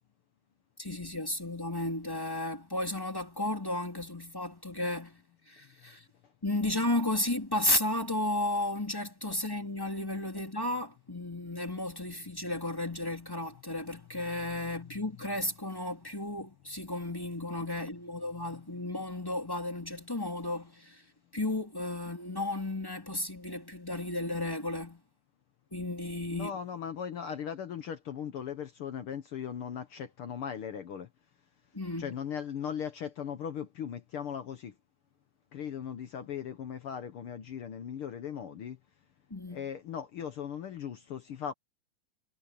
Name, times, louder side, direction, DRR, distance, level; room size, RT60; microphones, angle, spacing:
voice 1, 0.8-5.2 5.5-6.0 6.4-21.0 21.3-25.0 25.7-26.5 31.7-32.2 39.3-39.6, left 1 dB, 5° left, 2.3 m, -33 dB
voice 2, 26.3-31.1 32.0-34.7 35.5-38.8 39.5-41.5, left 8 dB, 70° left, 1.3 m, -38 dB
omnidirectional pair, 3.8 m